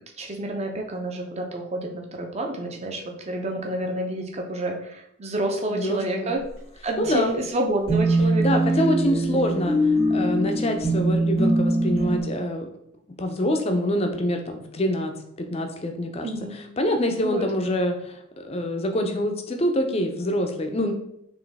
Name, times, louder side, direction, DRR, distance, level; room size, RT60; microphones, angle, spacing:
voice 1, 0.2-6.4 6.8-8.6 9.3-9.4 16.2-16.6 17.2-17.5, right 1 dB, 30° right, 2 dB, 0.6 m, -29 dB
voice 2, 5.7-6.3 7.0-7.3 8.4-12.7 13.2-16.3 16.8-20.9, left 1 dB, 25° left, 5 dB, 0.4 m, -26 dB
sound 1, 7.9-12.2, right 1 dB, 70° right, 1.5 m, -22 dB
3.9 x 3.0 x 3.4 m, 0.76 s
head